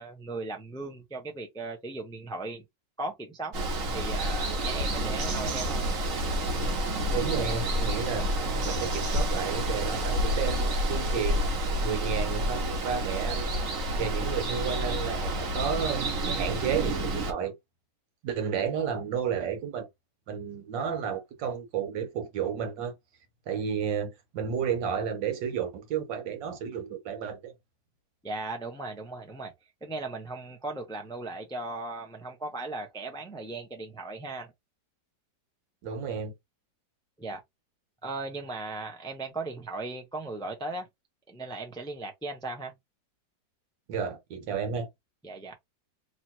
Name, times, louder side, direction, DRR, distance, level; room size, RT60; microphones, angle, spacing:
voice 1, 0.0-2.6 3.0-3.5 3.9-5.8 28.2-29.5 29.8-34.5 37.2-37.4 38.0-40.9 41.3-42.7 45.2-45.5, right 2 dB, 5° left, 0.3 m, -37 dB
Water, 3.5-17.3, right 1 dB, 55° right, 1.3 m, -29 dB
voice 2, 7.1-8.3 8.6-11.4 11.8-13.5 14.0-17.5 18.2-19.9 20.3-23.0 23.5-27.5 35.8-36.3 43.9-44.9, right 7 dB, 85° right, 1.6 m, -32 dB
3.0 x 2.9 x 4.3 m
omnidirectional pair, 1.9 m